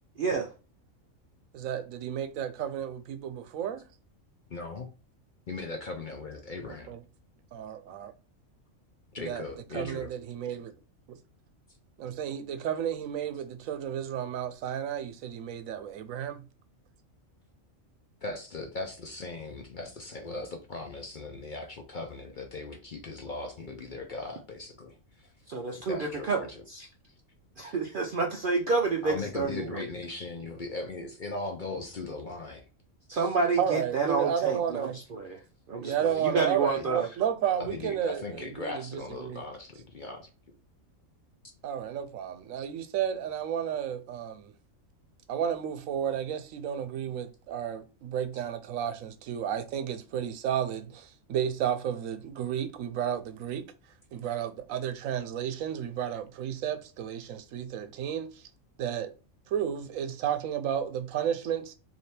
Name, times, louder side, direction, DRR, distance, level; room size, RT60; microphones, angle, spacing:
voice 1, 0.2-0.5 25.5-26.4 26.7-26.9 27.6-29.8 33.1-35.4 35.7-37.1, right 4 dB, 65° right, 0.5 m, -29 dB
voice 2, 1.5-3.8 6.7-7.0 7.5-8.1 9.2-9.4 9.7-10.7 11.1-11.2 12.0-16.4 33.6-35.0 35.8-39.4 41.6-44.5 45.3-53.7 54.1-58.3 58.8-59.1 59.5-61.7, right 9 dB, 80° right, 1.0 m, -32 dB
voice 3, 4.5-4.9 5.5-6.9 9.1-10.1 18.2-25.3 25.9-26.6 29.0-32.6 36.8-37.2 37.6-40.3, left 3 dB, 50° left, 0.6 m, -38 dB
3.3 x 2.7 x 4.2 m
omnidirectional pair, 1.4 m